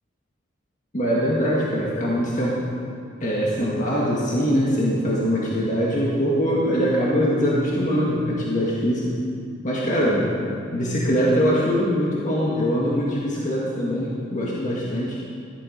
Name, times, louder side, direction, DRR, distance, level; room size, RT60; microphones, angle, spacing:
voice 1, 0.9-2.6 3.2-9.1 9.6-10.3 10.7-15.2, equal, 40° left, -5 dB, 1.9 m, -22 dB
15.5 x 11.5 x 5.2 m, 2.4 s
head